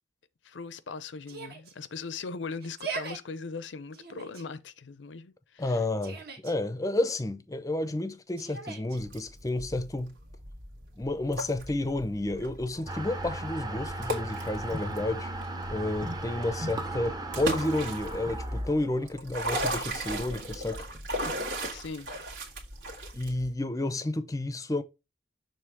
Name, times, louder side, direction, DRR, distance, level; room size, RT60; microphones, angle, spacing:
voice 1, 0.4-5.8 21.7-22.1, left 4 dB, 75° left, 0.5 m, -39 dB
Yell, 1.3-1.7 2.6-3.2 3.9-4.4 5.6-6.5 8.4-9.0, right 5 dB, 55° right, 1.4 m, -39 dB
voice 2, 5.6-10.1 11.0-15.3 15.7-20.9 23.1-24.8, left 2 dB, 20° left, 0.5 m, -31 dB
sound 1, 9.0-23.5, right 1 dB, 85° right, 1.9 m, -37 dB
sound 2, 12.9-21.0, right 1 dB, 20° right, 0.7 m, -37 dB
6.8 x 3.2 x 4.6 m
head